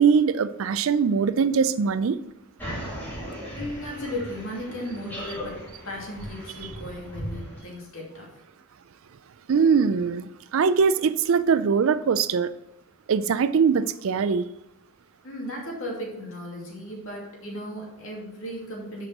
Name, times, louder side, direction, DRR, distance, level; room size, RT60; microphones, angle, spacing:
voice 1, 0.0-2.2 9.5-12.5 13.1-14.4, right 6 dB, 65° right, 15 dB, 0.4 m, -22 dB
sound 1, 2.6-7.6, equal, 10° left, 2.6 m, -37 dB
voice 2, 3.6-8.4 15.2-19.1, left 1 dB, 65° left, -2 dB, 2.5 m, -36 dB
6.8 x 5.3 x 6.0 m, 0.87 s
head